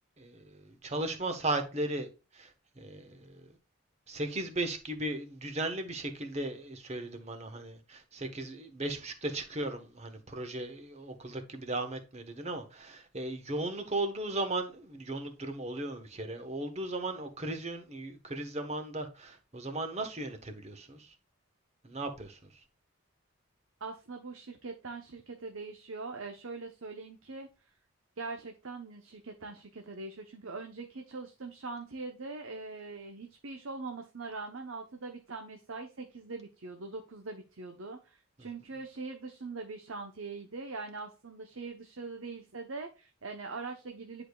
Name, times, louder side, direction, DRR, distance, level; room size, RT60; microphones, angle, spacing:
voice 1, 0.2-3.5 4.1-21.1 21.8-22.4, right 2 dB, 30° right, 1.2 m, -36 dB
voice 2, 23.8-27.5 28.2-44.3, right 3 dB, 75° right, 0.9 m, -42 dB
10.0 x 5.0 x 2.3 m
head